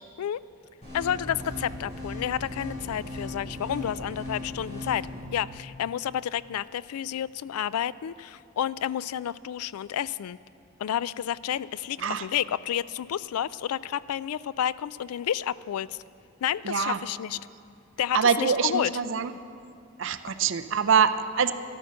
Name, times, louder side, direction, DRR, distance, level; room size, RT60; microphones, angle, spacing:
sound 1, 0.8-5.2, left 1 dB, 30° left, 4.3 m, -37 dB
voice 1, 0.9-10.4 10.8-16.0 16.4-17.4 18.0-18.9, left 10 dB, 85° left, 19 dB, 0.3 m, -30 dB
voice 2, 16.6-17.0 18.1-19.3 20.0-21.5, right 6 dB, 60° right, 11 dB, 0.5 m, -24 dB
13.0 x 12.5 x 6.4 m, 2.4 s
head